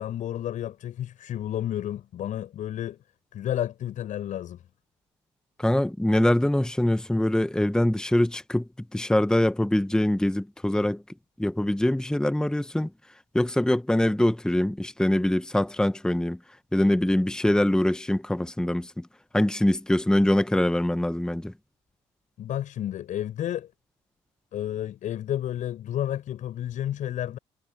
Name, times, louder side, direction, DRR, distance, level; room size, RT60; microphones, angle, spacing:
voice 1, 0.0-3.0 3.3-4.6 22.4-23.7 24.5-27.4, left 11 dB, 60° left, 7.3 m, -31 dB
voice 2, 5.6-11.0 11.4-12.9 13.3-16.4 16.7-19.1 19.3-21.5, left 1 dB, 5° left, 1.3 m, -23 dB
hypercardioid pair, 55°, 15 cm